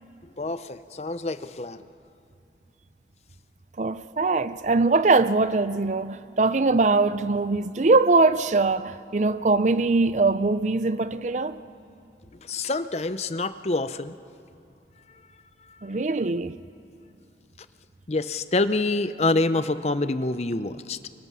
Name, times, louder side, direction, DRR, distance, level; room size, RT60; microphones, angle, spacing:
voice 1, 0.4-1.9 12.4-14.1 15.7-15.8 18.1-21.1, left 2 dB, 35° left, 0.6 m, -26 dB
voice 2, 3.8-11.6 15.8-16.6, right 3 dB, 40° right, 0.5 m, -22 dB
28.5 x 24.5 x 6.2 m
head